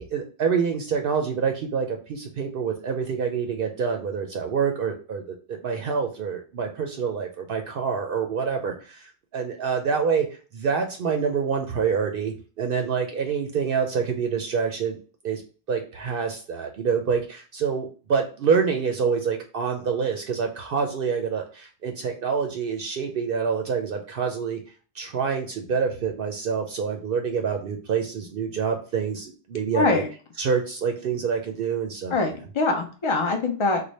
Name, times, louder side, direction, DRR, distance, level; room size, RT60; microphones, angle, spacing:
voice 1, 0.1-10.3 10.5-15.0 15.2-15.4 15.7-24.6 24.9-30.0 30.4-32.1, right 6 dB, 65° right, 3 dB, 0.7 m, -26 dB
voice 2, 29.7-30.1 32.1-33.8, left 3 dB, 35° left, 3 dB, 0.6 m, -23 dB
3.2 x 2.2 x 4.0 m, 0.37 s
omnidirectional pair, 1.1 m